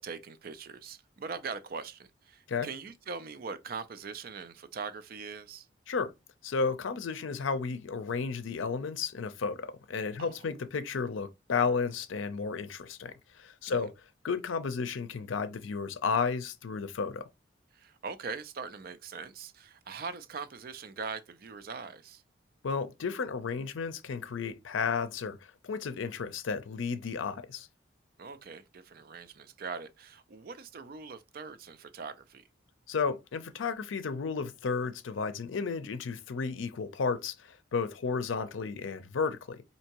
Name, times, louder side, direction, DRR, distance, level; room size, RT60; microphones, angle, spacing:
voice 1, 0.0-5.7 10.2-10.4 13.7-13.9 17.7-22.2 28.2-32.4, right 5 dB, 50° right, 0.4 m, -41 dB
voice 2, 6.4-13.9 14.2-17.2 22.6-25.4 25.6-27.7 32.9-39.6, left 5 dB, 85° left, 0.5 m, -33 dB
4.4 x 2.8 x 2.8 m
head